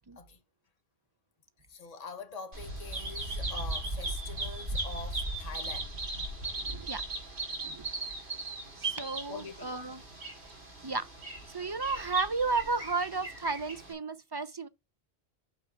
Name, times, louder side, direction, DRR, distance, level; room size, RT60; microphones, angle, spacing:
voice 1, 1.7-5.9 9.3-9.7, left 4 dB, 40° left, 1.2 m, -44 dB
Bird vocalization bird call bird song, 2.5-13.9, right 2 dB, 85° right, 2.7 m, -37 dB
voice 2, 6.6-7.0 7.6-7.9 8.8-10.0 10.8-11.1 11.5-14.7, right 4 dB, 35° right, 0.4 m, -33 dB
6.2 x 4.8 x 4.4 m
omnidirectional pair, 1.1 m